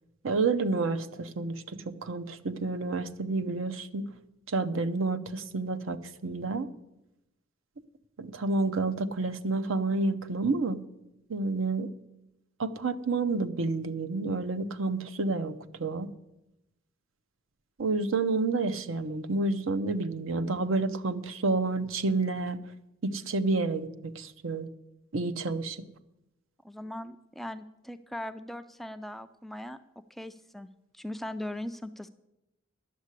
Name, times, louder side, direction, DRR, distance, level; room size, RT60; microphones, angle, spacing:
voice 1, 0.2-4.1 4.5-6.7 8.2-10.8 11.3-11.9 12.6-16.1 17.8-22.6 23.0-24.7 25.1-25.8, right 3 dB, 70° right, 10 dB, 0.7 m, -29 dB
voice 2, 26.6-29.8 30.1-30.7 30.9-32.1, left 1 dB, ahead, 10 dB, 0.3 m, -39 dB
11.0 x 7.4 x 8.1 m, 0.90 s
head